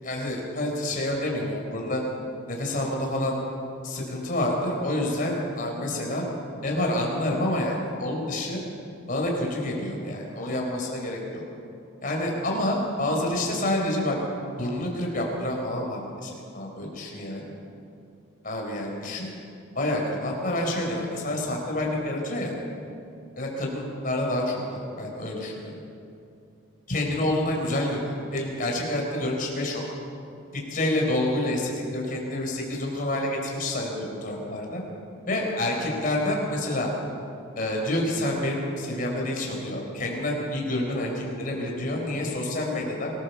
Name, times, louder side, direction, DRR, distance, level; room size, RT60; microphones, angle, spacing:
voice 1, 0.0-2.0 2.5-3.4 3.8-6.2 6.6-8.6 9.1-11.4 12.0-14.2 14.6-17.4 18.4-19.3 19.7-22.6 23.4-25.7 26.9-29.9 30.7-34.8 35.3-36.9 37.6-43.1, left 1 dB, 40° left, 0 dB, 4.6 m, -28 dB
24.5 x 15.5 x 7.1 m, 2.6 s
head